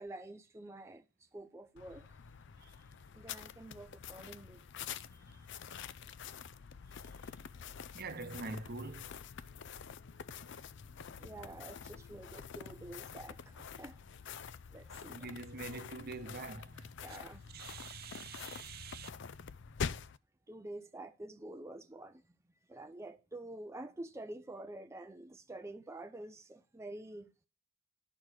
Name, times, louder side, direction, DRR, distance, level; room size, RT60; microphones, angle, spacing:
voice 1, 0.0-2.2 2.8-2.9 3.1-4.6 5.1-5.5 11.2-14.0 14.2-14.4 14.7-15.4 17.0-17.4 20.5-22.2 22.7-27.3, right 1 dB, 15° right, 0.4 m, -48 dB
sound 1, 1.8-20.2, left 6 dB, 60° left, 0.5 m, -46 dB
voice 2, 7.9-9.1 15.1-16.9 17.5-19.1, right 3 dB, 50° right, 0.8 m, -44 dB
10.5 x 6.5 x 4.8 m
head